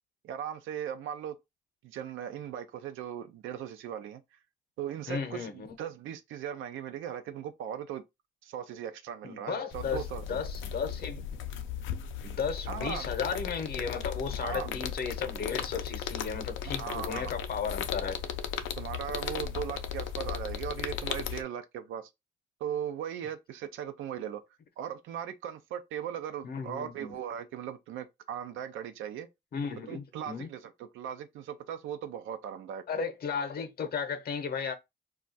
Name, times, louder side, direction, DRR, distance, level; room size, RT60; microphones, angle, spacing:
voice 1, 0.2-1.4 1.8-4.2 4.8-8.0 8.4-10.2 12.7-13.2 14.4-14.8 16.6-17.3 18.8-22.1 22.6-24.4 24.8-29.3 29.9-32.8, right 9 dB, 80° right, 0.5 m, -38 dB
voice 2, 5.1-5.7 9.2-11.2 12.2-18.1 26.4-27.1 29.5-30.5 32.9-34.7, left 6 dB, 50° left, 0.8 m, -35 dB
sound 1, 9.7-21.4, left 9 dB, 75° left, 0.4 m, -36 dB
2.4 x 2.2 x 3.9 m
cardioid pair, 90°, 20 cm